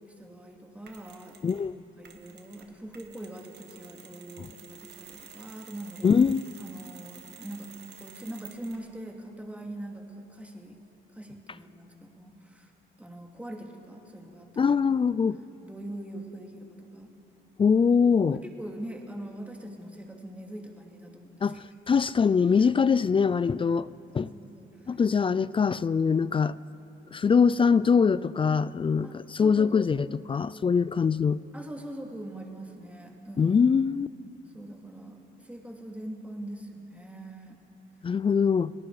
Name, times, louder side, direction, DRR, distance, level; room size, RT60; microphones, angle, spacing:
voice 1, 0.1-1.4 2.0-6.1 6.6-7.7 8.0-10.8 11.1-12.7 13.0-14.9 15.6-17.1 18.3-21.4 22.6-22.9 24.1-25.0 29.0-29.1 29.4-30.2 31.5-33.6 34.5-37.6, right 1 dB, 5° right, 2.6 m, -42 dB
Mechanisms, 0.9-1.7 2.0-8.9, right 7 dB, 60° right, 2.0 m, -50 dB
voice 2, 1.4-1.7 4.4-4.5 6.0-6.5 14.6-15.4 17.6-18.4 21.4-23.9 24.1-24.3 24.9-26.6 27.1-31.4 33.4-34.1 38.0-38.7, left 6 dB, 25° left, 0.4 m, -23 dB
29.0 x 19.0 x 4.9 m
cardioid pair, 90°, 20 cm